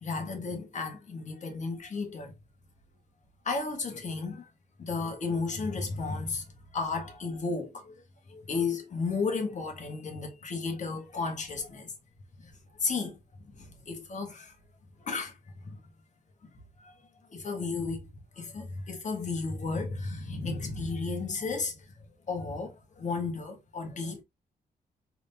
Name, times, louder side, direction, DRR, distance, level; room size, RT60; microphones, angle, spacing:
voice 1, 0.0-2.3 3.4-4.5 4.8-6.4 6.7-8.0 8.3-11.9 12.4-12.5 12.8-13.2 13.5-14.5 15.0-15.3 15.6-15.8 16.8-16.9 17.3-18.1 18.3-21.8 22.3-24.2, left 4 dB, 50° left, 1.4 m, -33 dB
3.8 x 3.5 x 2.7 m
cardioid pair, 95°, 16 cm